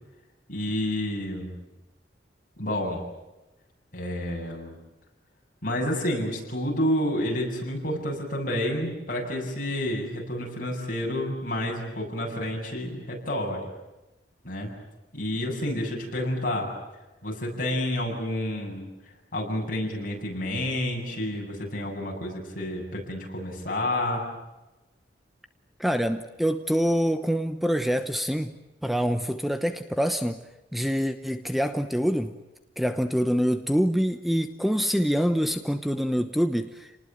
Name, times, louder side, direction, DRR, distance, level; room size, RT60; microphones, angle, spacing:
voice 1, 0.5-1.5 2.6-3.0 3.9-4.7 5.6-13.7 14.4-14.7 15.1-16.7 17.2-18.9 19.3-24.2, left 1 dB, 50° left, 0 dB, 8.0 m, -29 dB
voice 2, 25.8-28.5 28.8-30.4 30.7-32.3 32.8-36.9, equal, ahead, 8 dB, 0.9 m, -25 dB
29.5 x 20.0 x 9.0 m, 1.0 s
head